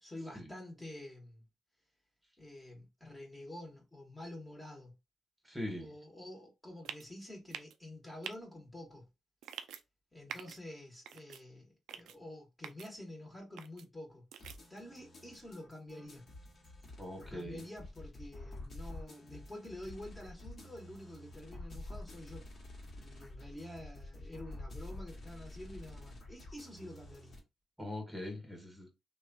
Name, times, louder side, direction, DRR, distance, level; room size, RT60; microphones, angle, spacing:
voice 1, 0.0-1.4 2.4-4.9 5.8-9.1 10.1-14.3 14.7-16.3 17.1-22.4 22.9-27.4, left 1 dB, 15° left, 1.2 m, -48 dB
voice 2, 5.4-5.9 17.0-17.6 27.8-28.9, left 1 dB, 10° right, 1.3 m, -41 dB
sound 1, 6.9-7.1 7.5-7.8 8.2-8.4 9.4-9.8 10.3-10.6 11.1-11.4 11.9-12.2 12.6-12.9 13.6-13.8 14.3-14.6, right 8 dB, 80° right, 0.3 m, -45 dB
sound 2, 14.4-27.4, left 1 dB, 55° left, 1.2 m, -49 dB
2.9 x 2.3 x 2.6 m
supercardioid pair, 65°, 0 cm